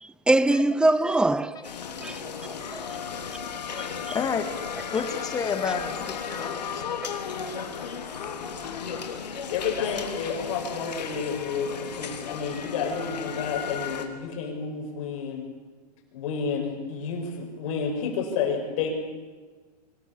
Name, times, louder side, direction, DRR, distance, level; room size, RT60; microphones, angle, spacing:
voice 1, 0.0-1.6 2.0-2.2 2.7-2.8 3.8-4.2 5.6-5.7, right 2 dB, 5° right, 0.7 m, -23 dB
sound 1, 1.6-14.1, left 6 dB, 90° left, 3.3 m, -35 dB
voice 2, 4.1-4.6 4.9-7.0, left 6 dB, 20° left, 2.3 m, -30 dB
voice 3, 9.5-15.4 16.1-18.9, left 6 dB, 55° left, 6.9 m, -30 dB
24.5 x 20.0 x 7.2 m
hypercardioid pair, 130°, 21 cm